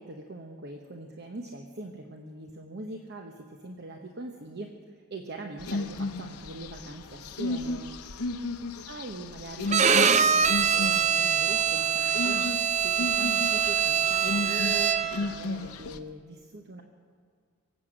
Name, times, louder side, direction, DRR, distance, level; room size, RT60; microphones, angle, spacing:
voice 1, 0.0-7.9 8.9-16.8, right 2 dB, 50° right, 3 dB, 0.9 m, -42 dB
sound 1, 5.6-16.0, left 3 dB, 85° left, 0.8 m, -34 dB
Bowed string instrument, 9.7-15.3, right 7 dB, 30° right, 0.4 m, -24 dB
24.0 x 8.4 x 6.2 m, 2.1 s
head